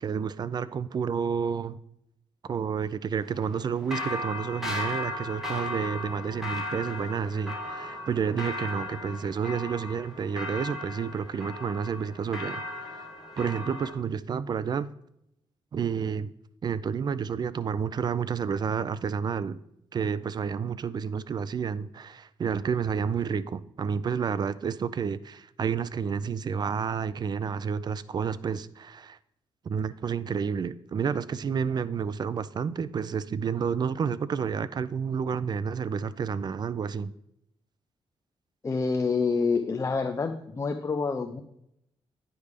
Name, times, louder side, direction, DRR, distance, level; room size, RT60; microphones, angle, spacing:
voice 1, 0.0-1.8 2.4-13.0 13.4-14.9 15.7-16.3 16.6-19.6 19.9-29.2 29.7-37.1, right 6 dB, 45° right, 0.4 m, -30 dB
sound 1, 3.2-13.9, left 1 dB, 5° right, 1.3 m, -36 dB
voice 2, 38.6-41.4, left 4 dB, 30° left, 0.5 m, -27 dB
9.5 x 3.3 x 5.1 m
cardioid pair, 90°, 10 cm